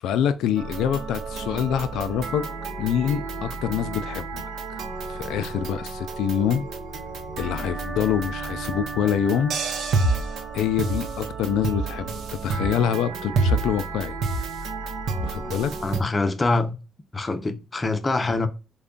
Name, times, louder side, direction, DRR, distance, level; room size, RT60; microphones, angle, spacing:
voice 1, 0.0-2.5 2.8-4.4 4.7-4.8 5.1-6.7 7.4-9.6 10.5-14.2 15.2-15.7, left 9 dB, 85° left, 0.4 m, -25 dB
sound 1, 0.6-16.0, right 3 dB, 70° right, 0.7 m, -30 dB
voice 2, 15.8-16.7 17.1-18.5, left 3 dB, 25° left, 0.6 m, -24 dB
3.3 x 2.3 x 3.7 m
cardioid pair, 90°, 0 cm